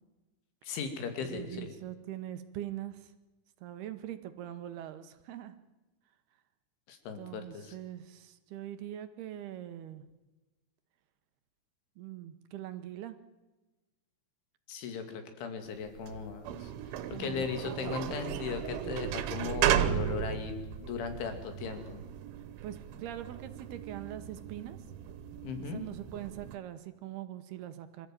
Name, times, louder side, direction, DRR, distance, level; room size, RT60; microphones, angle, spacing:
voice 1, 0.7-1.7 6.9-7.7 14.7-16.7 17.1-20.5 20.8-22.0 25.4-25.8, left 6 dB, 85° left, 7 dB, 4.9 m, -37 dB
voice 2, 1.2-3.1 3.6-5.6 7.2-10.1 12.0-13.2 17.1-18.5 22.6-24.8 25.5-28.1, right 12 dB, 70° right, 10 dB, 2.7 m, -42 dB
sound 1, 15.8-26.6, right 11 dB, 85° right, 3.6 m, -35 dB
26.5 x 14.0 x 9.1 m, 1.1 s
omnidirectional pair, 5.3 m